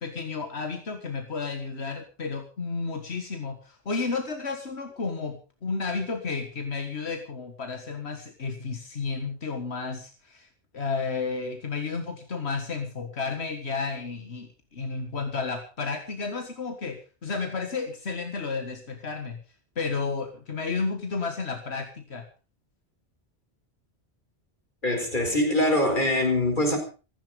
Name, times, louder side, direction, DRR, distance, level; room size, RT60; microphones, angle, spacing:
voice 1, 0.0-10.5 10.7-19.4 19.8-22.2, left 4 dB, 85° left, 6 dB, 1.9 m, -32 dB
voice 2, 24.8-26.8, left 1 dB, 50° left, 5 dB, 4.9 m, -23 dB
15.5 x 14.5 x 5.1 m, 0.35 s
omnidirectional pair, 1.1 m